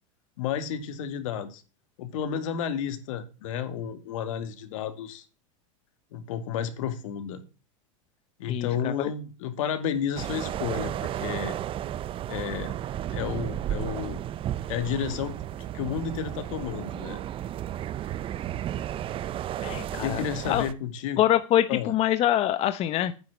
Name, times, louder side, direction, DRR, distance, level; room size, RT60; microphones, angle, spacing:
voice 1, 0.4-1.6 2.0-5.2 6.1-7.4 8.4-11.5 12.3-12.7 13.1-14.2 14.7-15.4 15.7-17.2 20.0-21.2 21.7-21.9, left 8 dB, 70° left, 10 dB, 2.4 m, -31 dB
voice 2, 8.5-9.1 19.6-20.6 21.2-23.1, left 12 dB, 35° left, 11 dB, 0.9 m, -25 dB
sound 1, 10.1-20.7, right 11 dB, 30° right, 0.8 m, -33 dB
9.7 x 7.7 x 7.3 m, 0.34 s
supercardioid pair, 125°, 17 cm